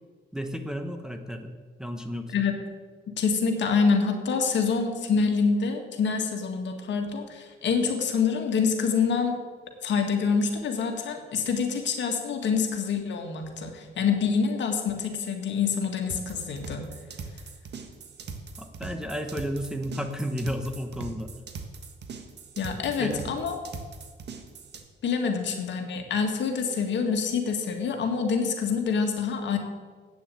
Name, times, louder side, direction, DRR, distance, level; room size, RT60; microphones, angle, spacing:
voice 1, 0.3-1.5 1.8-2.4 18.6-21.3 23.0-23.3, equal, 5° right, 5 dB, 1.0 m, -32 dB
voice 2, 3.1-9.4 9.8-16.9 22.6-23.6 25.0-29.6, left 5 dB, 65° left, 4 dB, 1.9 m, -26 dB
sound 1, 16.1-24.8, right 5 dB, 60° right, 1.5 m, -40 dB
8.9 x 7.0 x 8.6 m, 1.5 s
cardioid pair, 90°, 20 cm